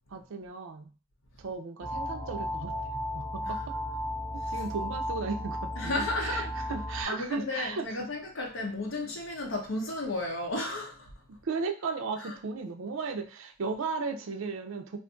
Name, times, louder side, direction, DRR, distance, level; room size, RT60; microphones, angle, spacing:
voice 1, 0.1-0.9 1.4-3.8 4.5-8.1 11.3-15.0, right 4 dB, 70° right, 4 dB, 0.5 m, -36 dB
sound 1, 1.8-7.0, equal, ahead, 1.2 m, -34 dB
voice 2, 5.8-6.5 7.0-11.1 12.2-12.4, left 2 dB, 70° left, 0 dB, 0.8 m, -34 dB
2.5 x 2.4 x 3.6 m, 0.35 s
head